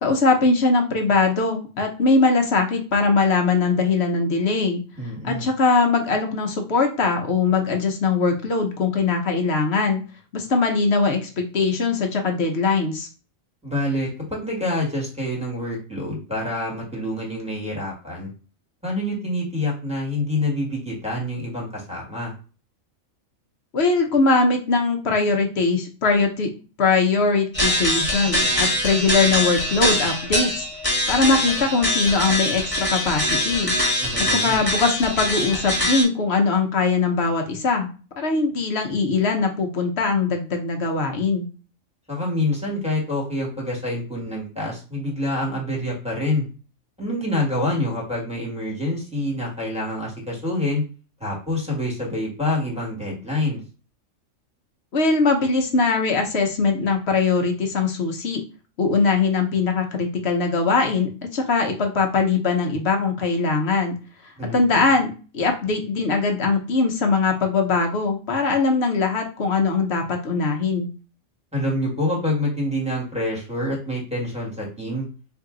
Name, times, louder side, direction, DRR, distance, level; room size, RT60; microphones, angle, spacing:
voice 1, 0.0-4.8 5.2-10.0 10.3-13.1 23.7-30.6 31.1-33.7 34.2-37.9 38.2-41.5 54.9-58.4 58.8-64.0 64.5-70.9, left 4 dB, 60° left, 3 dB, 1.0 m, -21 dB
voice 2, 5.0-5.5 13.6-18.3 18.8-22.3 34.0-34.6 42.1-46.4 47.0-50.8 51.2-53.6 64.4-64.9 71.5-75.0, left 1 dB, 5° right, -4 dB, 1.5 m, -26 dB
sound 1, 27.5-36.0, left 1 dB, 15° left, 1.4 m, -23 dB
3.9 x 2.7 x 3.8 m, 0.35 s
omnidirectional pair, 1.4 m